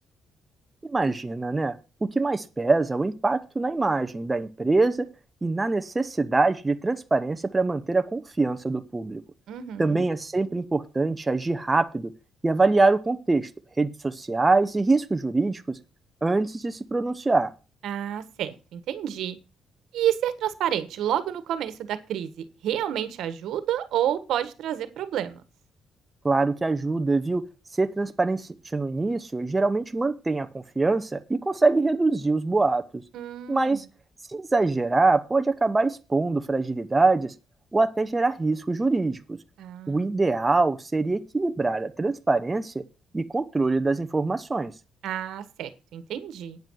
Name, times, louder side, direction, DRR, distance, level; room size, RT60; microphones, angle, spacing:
voice 1, 0.9-1.8 2.0-5.1 5.4-9.2 9.8-12.1 12.4-13.5 13.8-15.8 16.2-17.5 26.2-27.4 27.8-33.0 33.5-33.8 34.3-37.3 37.7-39.4 39.9-42.8 43.1-44.7, right 3 dB, 20° right, 9 dB, 0.9 m, -24 dB
voice 2, 9.5-10.0 17.8-19.4 19.9-25.4 33.1-33.8 39.6-40.1 45.0-46.6, right 10 dB, 80° right, 13 dB, 1.4 m, -29 dB
9.4 x 7.1 x 6.2 m, 0.31 s
cardioid pair, 90°, 0 cm